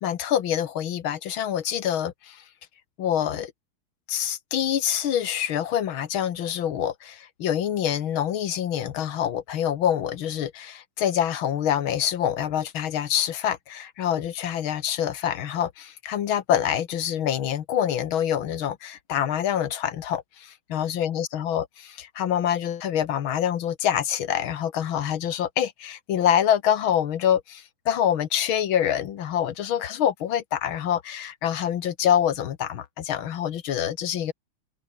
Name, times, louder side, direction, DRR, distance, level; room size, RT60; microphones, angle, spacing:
voice 1, 0.0-2.4 3.0-3.5 4.1-21.6 22.2-34.3, left 10 dB, 70° left, 2.0 m, -26 dB
omnidirectional pair, 2.4 m